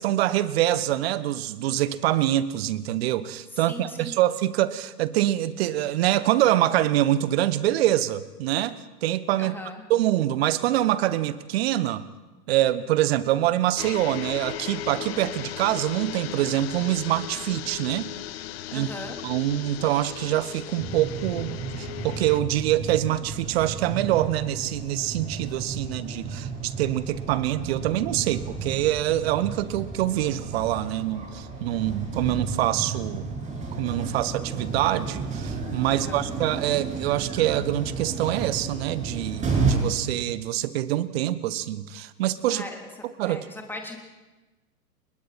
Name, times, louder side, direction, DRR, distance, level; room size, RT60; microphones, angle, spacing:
voice 1, 0.0-8.8 9.0-9.6 9.9-12.0 12.5-18.1 18.7-18.9 19.2-33.2 33.8-42.6 43.2-43.5, right 13 dB, 40° right, 16 dB, 1.3 m, -25 dB
voice 2, 3.5-4.1 9.4-9.8 18.7-19.2 35.9-36.3 42.5-42.8 43.2-44.0, left 2 dB, 5° left, 2 dB, 3.2 m, -39 dB
sound 1, 13.8-22.4, left 13 dB, 40° left, 0.8 m, -37 dB
sound 2, 20.8-39.7, right 4 dB, 15° right, 7.1 m, -32 dB
30.0 x 22.0 x 4.3 m, 1.2 s
figure-of-eight pair, 110°, 47 cm